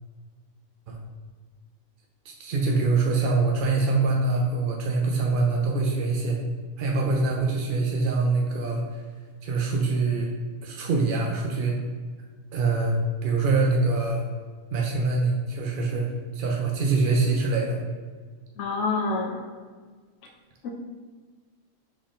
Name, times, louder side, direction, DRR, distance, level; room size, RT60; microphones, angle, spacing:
voice 1, 2.2-6.4 6.8-9.0 9.4-10.3 10.6-11.8 12.5-14.2 14.7-17.8, right 3 dB, 60° right, 0 dB, 0.6 m, -24 dB
voice 2, 18.6-19.5 20.6-20.7, left 3 dB, 65° left, 1 dB, 0.9 m, -27 dB
4.0 x 3.6 x 3.7 m, 1.5 s
omnidirectional pair, 1.4 m